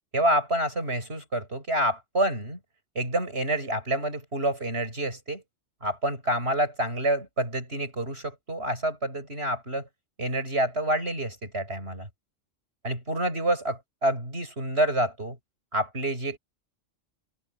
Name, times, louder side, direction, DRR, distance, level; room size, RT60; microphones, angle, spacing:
voice 1, 0.1-2.6 2.9-5.4 5.8-9.9 10.2-12.1 12.8-15.4 15.7-16.4, right 1 dB, 55° right, 8.4 m, -28 dB
omnidirectional pair, 1.3 m